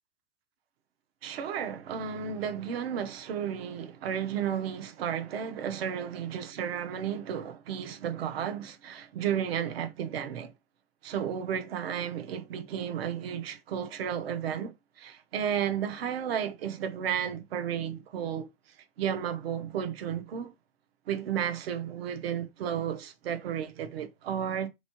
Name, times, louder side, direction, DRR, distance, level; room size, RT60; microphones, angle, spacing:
voice 1, 1.2-10.5 11.0-18.5 19.0-20.5 21.1-24.7, right 8 dB, 65° right, 0.8 m, -33 dB
3.6 x 3.1 x 2.9 m
hypercardioid pair, 115°, 32 cm